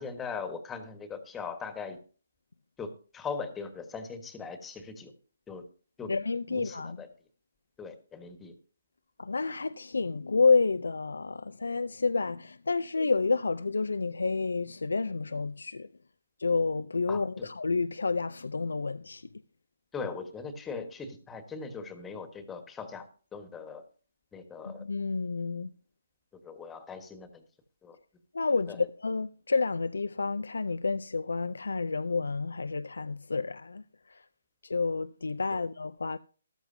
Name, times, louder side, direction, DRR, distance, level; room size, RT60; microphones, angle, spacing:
voice 1, 0.0-2.0 2.8-5.1 5.5-5.6 6.0-6.1 6.5-7.1 7.8-8.5 17.1-17.5 19.9-23.8 24.3-24.8 26.4-27.4 27.8-28.0 28.7-28.9 35.5-35.6, left 5 dB, 10° left, 1.5 m, -40 dB
voice 2, 6.1-7.0 9.2-15.9 16.4-19.3 24.7-25.7 28.3-34.2 34.6-36.2, left 4 dB, 80° left, 0.4 m, -29 dB
14.0 x 13.0 x 2.7 m
figure-of-eight pair, 145°, 0 cm